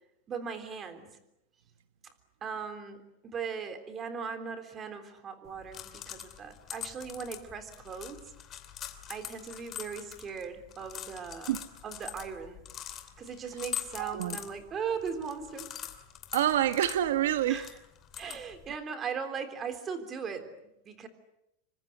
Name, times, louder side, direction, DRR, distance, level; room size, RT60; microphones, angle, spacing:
voice 1, 0.3-1.1 2.4-8.2 9.1-12.6 13.2-15.7 17.5-17.8 18.2-20.5 20.9-21.1, right 6 dB, 20° right, 3.6 m, -38 dB
sound 1, 5.4-18.8, left 10 dB, 25° left, 2.8 m, -44 dB
voice 2, 14.0-14.4 16.3-17.6, right 11 dB, 80° right, 1.5 m, -27 dB
27.0 x 25.0 x 8.1 m
supercardioid pair, 165°, 0 cm